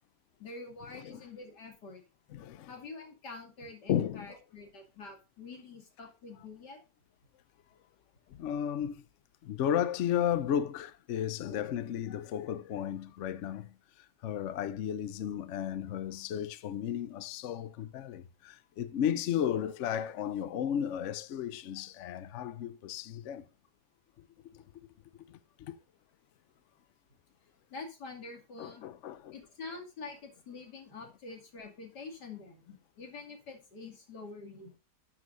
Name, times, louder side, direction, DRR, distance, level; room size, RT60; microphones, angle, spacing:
voice 1, 0.4-2.0 2.7-6.8 11.5-11.6 27.7-28.9 29.3-34.7, left 3 dB, 85° left, 3.0 m, -46 dB
voice 2, 2.3-2.7 3.9-4.3 8.3-9.0 9.4-23.5 24.5-24.6 25.3-25.8 28.6-29.3, left 9 dB, 60° left, 0.8 m, -34 dB
12.5 x 7.6 x 2.5 m
omnidirectional pair, 1.8 m